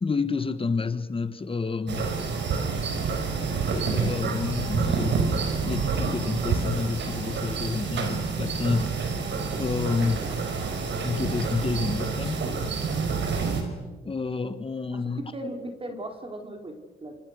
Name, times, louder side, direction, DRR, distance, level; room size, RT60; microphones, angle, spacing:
voice 1, 0.0-2.1 3.9-5.3 5.6-9.0 9.6-10.3 11.0-12.5 14.0-15.2, left 4 dB, 25° left, 1.6 m, -29 dB
sound 1, 1.9-13.6, right 5 dB, 65° right, 5.3 m, -28 dB
voice 2, 10.1-10.4 14.9-17.2, right 1 dB, 25° right, 4.2 m, -38 dB
27.5 x 26.5 x 6.6 m
cardioid pair, 90°, 20 cm